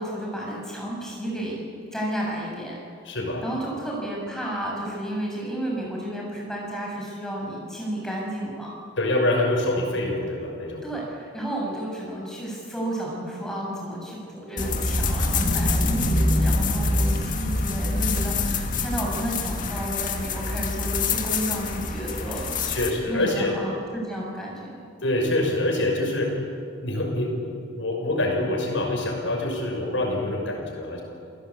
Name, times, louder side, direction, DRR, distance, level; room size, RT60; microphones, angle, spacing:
voice 1, 0.0-1.6 1.9-2.8 3.4-8.7 10.8-22.6 23.1-24.8, right 1 dB, 5° left, -3 dB, 6.9 m, -32 dB
voice 2, 3.0-3.4 9.0-10.9 22.7-23.5 25.0-26.3 26.8-31.0, left 1 dB, 75° left, 1 dB, 6.0 m, -25 dB
sound 1, 14.6-22.9, left 2 dB, 40° left, 2.1 m, -25 dB
28.0 x 17.0 x 8.5 m, 2.4 s
head